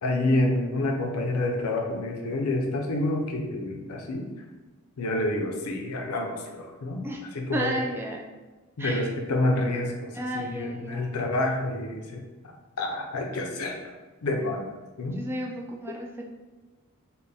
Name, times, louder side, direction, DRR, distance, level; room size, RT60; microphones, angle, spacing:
voice 1, 0.0-4.3 5.0-7.0 7.3-7.8 8.8-12.3 12.8-13.8 14.2-14.7 15.0-15.2, left 2 dB, 75° left, 2 dB, 0.6 m, -28 dB
voice 2, 7.5-8.2 8.8-9.0 10.1-11.2 15.2-16.2, right 1 dB, 10° right, 0 dB, 0.3 m, -32 dB
4.2 x 2.1 x 3.5 m, 1.2 s
head